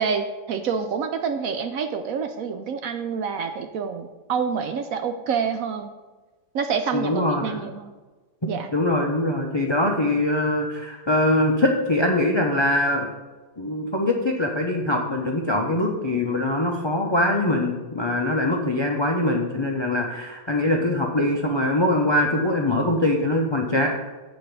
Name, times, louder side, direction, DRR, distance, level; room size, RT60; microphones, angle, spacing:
voice 1, 0.0-5.9 6.5-7.9 8.5-8.7, right 6 dB, 70° right, 7 dB, 0.9 m, -27 dB
voice 2, 6.9-7.6 8.4-13.1 13.6-23.9, left 1 dB, 45° left, 1 dB, 0.3 m, -23 dB
7.8 x 4.2 x 6.7 m, 1.2 s
omnidirectional pair, 1.8 m